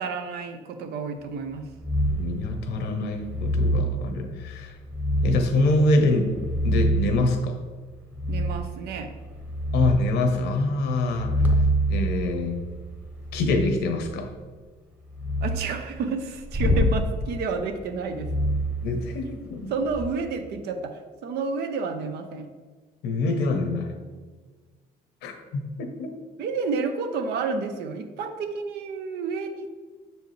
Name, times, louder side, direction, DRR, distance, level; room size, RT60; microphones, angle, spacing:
voice 1, 0.0-1.7 8.3-9.1 15.4-18.3 19.7-22.5 26.4-29.7, right 4 dB, 75° right, 7 dB, 0.7 m, -30 dB
sound 1, 1.8-2.4 3.2-3.9 4.9-5.6 6.2-7.2 8.1-8.7 9.2-10.1 11.1-13.8 15.1-15.6 16.5-17.0 18.1-19.4 19.8-20.1, equal, 10° right, 1.0 m, -25 dB
voice 2, 2.1-4.7 5.2-6.3 6.6-7.6 9.7-11.5 11.9-12.6 13.3-14.3 18.8-19.7 23.0-24.0 25.2-26.1, left 2 dB, 80° left, 5 dB, 0.9 m, -25 dB
6.7 x 4.4 x 3.2 m, 1.4 s
cardioid pair, 110°, 17 cm